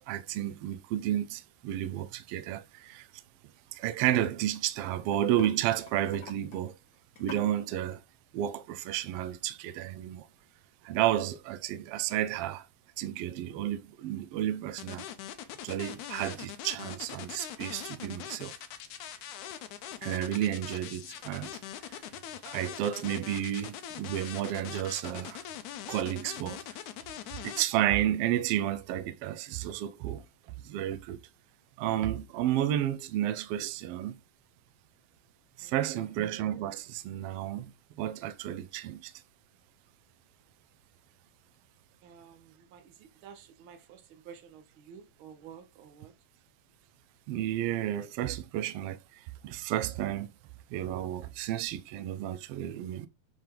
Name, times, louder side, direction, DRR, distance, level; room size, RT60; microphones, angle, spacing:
voice 1, 0.1-3.1 3.7-6.8 7.2-8.0 8.3-10.3 10.8-12.7 13.0-15.0 15.6-18.6 20.0-21.6 22.5-25.4 25.9-26.8 27.4-30.2 30.6-31.2 31.8-34.2 35.6-37.7 38.0-39.1 47.3-50.3 50.7-53.1, right 12 dB, 85° right, 1.3 m, -32 dB
sound 1, 3.8-4.7 5.0-7.5, left 5 dB, 55° left, 1.1 m, -47 dB
sound 2, 14.8-27.6, left 11 dB, 80° left, 2.2 m, -42 dB
voice 2, 35.6-36.3 42.0-46.1, right 7 dB, 60° right, 1.4 m, -52 dB
7.5 x 3.4 x 3.7 m
omnidirectional pair, 3.4 m